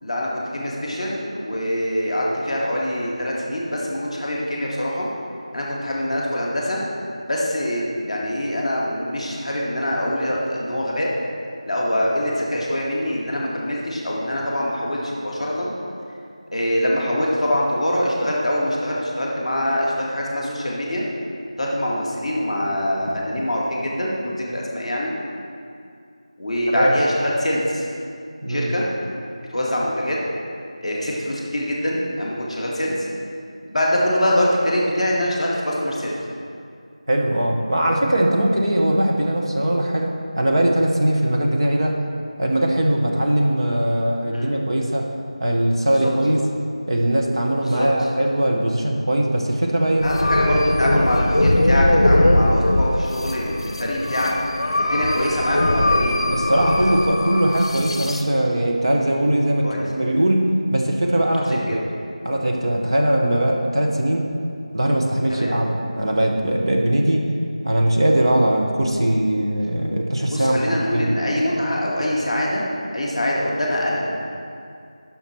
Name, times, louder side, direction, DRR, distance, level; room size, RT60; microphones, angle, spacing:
voice 1, 0.0-5.1 5.5-6.8 7.3-11.1 11.7-15.7 16.5-21.1 21.6-25.2 26.4-27.9 28.5-28.9 29.5-30.2 30.8-33.1 33.7-36.2 44.3-44.5 45.9-46.1 47.6-47.9 50.0-54.3 54.8-56.8 59.6-59.8 61.3-61.8 65.3-65.6 70.3-72.7 72.9-74.1, left 1 dB, ahead, -21 dB, 0.9 m, -24 dB
voice 2, 28.4-28.7 37.1-42.0 42.4-45.1 45.4-46.4 46.9-50.1 56.3-61.8 62.2-64.3 64.7-67.3 67.6-71.1, right 1 dB, 45° right, 0 dB, 0.9 m, -20 dB
sound 1, 50.0-58.2, left 1 dB, 45° left, 0.7 m, -20 dB
7.2 x 5.9 x 6.0 m, 2.3 s
figure-of-eight pair, 180°, 4 cm